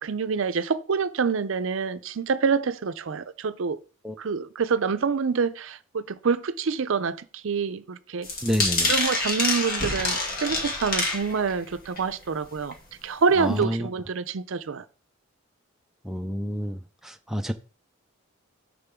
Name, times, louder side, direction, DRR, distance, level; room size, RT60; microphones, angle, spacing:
voice 1, 0.0-3.8 4.2-8.3 8.9-12.8 13.0-14.9, right 5 dB, 70° right, 0.5 m, -26 dB
sound 1, 8.2-11.6 12.0-12.3 12.7-12.8 13.1-13.2, left 2 dB, 45° left, 1.8 m, -26 dB
voice 2, 8.4-8.9 13.4-13.9 16.0-17.5, equal, ahead, 0.4 m, -29 dB
6.8 x 6.2 x 3.6 m
head